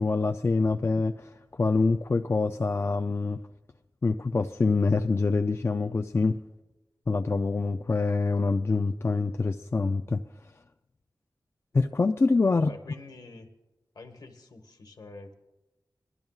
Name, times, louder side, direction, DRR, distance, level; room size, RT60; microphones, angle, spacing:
voice 1, 0.0-3.4 4.0-6.4 7.1-10.2 11.7-12.7, left 3 dB, 35° left, 0.4 m, -25 dB
voice 2, 12.5-13.5 13.9-15.3, left 3 dB, 70° left, 1.3 m, -46 dB
21.5 x 12.0 x 2.4 m
wide cardioid pair, 105°, 7 cm